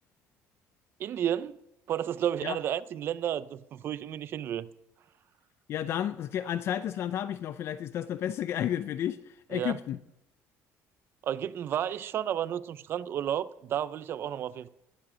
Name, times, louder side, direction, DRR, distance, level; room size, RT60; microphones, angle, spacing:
voice 1, 1.0-1.5 1.9-4.7 9.5-9.8 11.2-14.7, right 10 dB, 45° right, 0.5 m, -32 dB
voice 2, 5.7-10.0, left 10 dB, 50° left, 0.4 m, -32 dB
19.5 x 7.6 x 6.2 m
cardioid pair, 150°, 6 cm